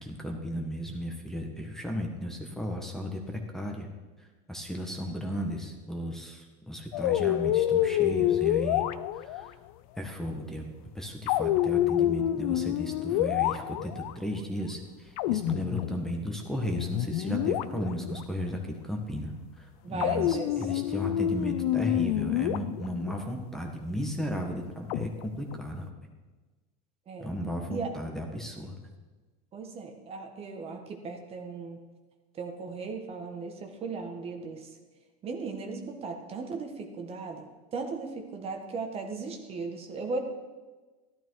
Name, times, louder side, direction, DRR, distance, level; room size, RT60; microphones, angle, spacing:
voice 1, 0.0-3.9 4.2-8.9 9.1-9.5 10.0-10.6 10.9-25.9 27.2-28.8, equal, ahead, 2 dB, 1.6 m, -35 dB
sound 1, 6.9-9.5 11.3-14.1 15.2-16.4 16.7-18.2 20.0-23.2 24.9-25.6, left 12 dB, 70° left, 0.6 m, -28 dB
voice 2, 19.8-20.7 27.1-27.4 27.7-27.9 29.5-31.8 32.3-34.7 35.2-40.2, right 4 dB, 30° right, 4 dB, 1.5 m, -37 dB
13.5 x 12.5 x 4.8 m, 1.3 s
supercardioid pair, 135°, 19 cm